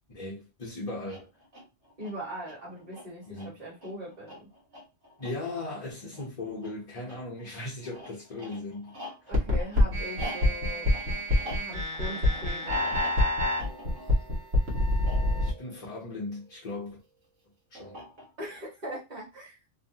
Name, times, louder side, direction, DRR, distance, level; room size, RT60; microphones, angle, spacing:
voice 1, 0.1-1.3 3.3-3.6 5.2-8.9 9.2-9.3 15.4-17.0 17.7-18.0, left 2 dB, 40° left, 0.7 m, -38 dB
sound 1, 0.9-16.7 17.7-18.6, equal, 90° right, 1.5 m, -46 dB
voice 2, 2.0-4.4 9.3-10.9 11.6-13.0 18.4-19.6, equal, 35° right, 1.5 m, -40 dB
sound 2, 9.3-15.5, left 1 dB, 75° right, 1.3 m, -26 dB
3.0 x 2.2 x 2.7 m
omnidirectional pair, 1.3 m